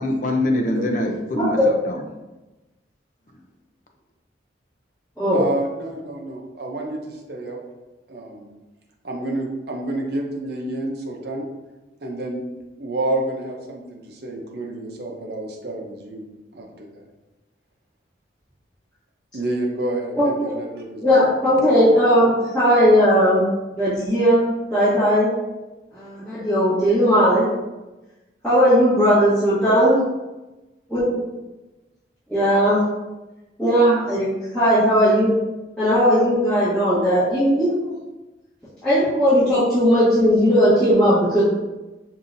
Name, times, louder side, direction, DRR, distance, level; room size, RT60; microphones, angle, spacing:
voice 1, 0.0-2.0, left 1 dB, 45° left, 0.5 m, -24 dB
voice 2, 5.3-7.0 7.3-7.6 8.1-8.5 9.0-11.4 12.0-12.4 12.8-16.2 16.5-16.7 19.3-21.3, right 2 dB, 55° right, 0.7 m, -29 dB
voice 3, 21.0-23.5 23.8-25.3 25.9-27.4 28.4-29.9 30.9-31.3 32.3-32.8 33.6-35.3 35.8-37.7 38.8-41.4, equal, 5° left, 1.4 m, -17 dB
5.4 x 2.7 x 2.6 m
head